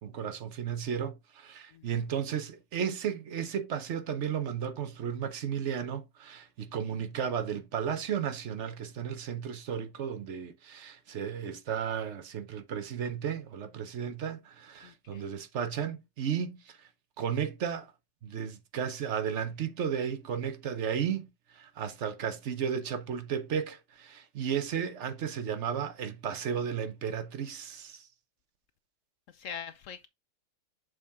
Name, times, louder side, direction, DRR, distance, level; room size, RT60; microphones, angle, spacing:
voice 1, 0.0-16.9 17.2-17.9 18.2-21.3 21.5-28.1, right 8 dB, 55° right, 1.0 m, -34 dB
voice 2, 14.8-15.3 29.3-30.1, left 8 dB, 70° left, 0.8 m, -43 dB
6.5 x 4.2 x 3.5 m
omnidirectional pair, 1.7 m